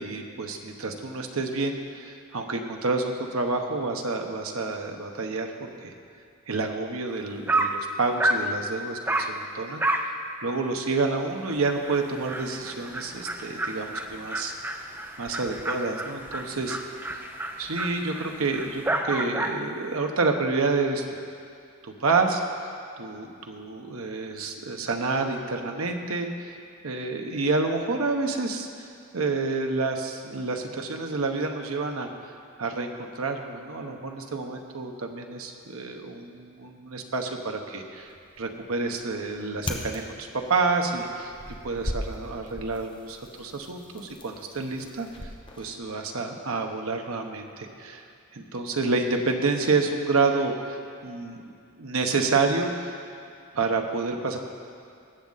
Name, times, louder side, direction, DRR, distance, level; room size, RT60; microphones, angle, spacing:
voice 1, 0.0-5.9 6.5-10.1 10.4-14.5 15.2-17.0 17.6-21.0 21.8-26.5 26.8-32.1 32.6-38.1 38.4-41.3 41.6-45.3 45.6-48.0 48.3-50.8 51.0-52.9 53.5-54.4, right 3 dB, 85° right, 3 dB, 1.0 m, -29 dB
Dog, 7.1-7.2 7.5-7.8 8.2-8.5 9.1-9.4 9.8-10.1 10.5-10.6 11.0-11.1 11.4-11.5 11.8-19.7, right 2 dB, 10° right, 0.4 m, -30 dB
sound 1, 37.9-46.0, left 1 dB, 25° left, 0.9 m, -39 dB
19.0 x 7.4 x 4.1 m, 2.4 s
head